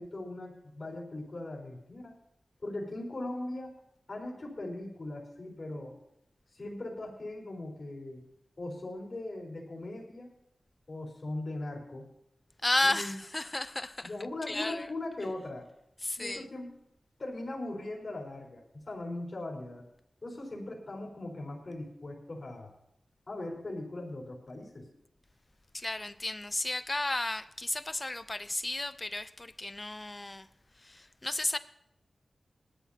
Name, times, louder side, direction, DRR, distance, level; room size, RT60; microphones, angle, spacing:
voice 1, 0.0-2.1 2.6-3.7 4.1-5.9 6.5-8.2 8.6-10.3 10.9-12.1 12.8-13.2 14.0-15.7 16.2-16.7 17.2-19.9 20.2-22.7 23.3-24.9, left 2 dB, 50° left, 4.5 m, -39 dB
voice 2, 12.6-14.1 14.5-14.9 16.0-16.4 25.7-30.5 30.8-31.6, left 2 dB, 30° left, 0.6 m, -33 dB
19.5 x 12.5 x 2.9 m
wide cardioid pair, 65°, 0 cm